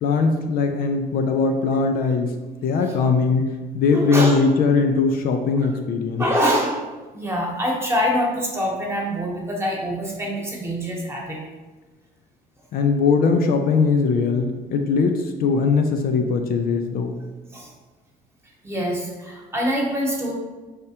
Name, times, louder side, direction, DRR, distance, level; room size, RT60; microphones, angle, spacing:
voice 1, 0.0-6.2 12.7-17.2, left 4 dB, 60° left, 5 dB, 0.4 m, -20 dB
voice 2, 3.9-4.4 6.2-6.8 7.1-11.4 17.5-17.7 18.4-20.3, equal, 15° right, -2 dB, 1.1 m, -24 dB
4.5 x 3.4 x 2.8 m, 1.3 s
cardioid pair, 110°, 17 cm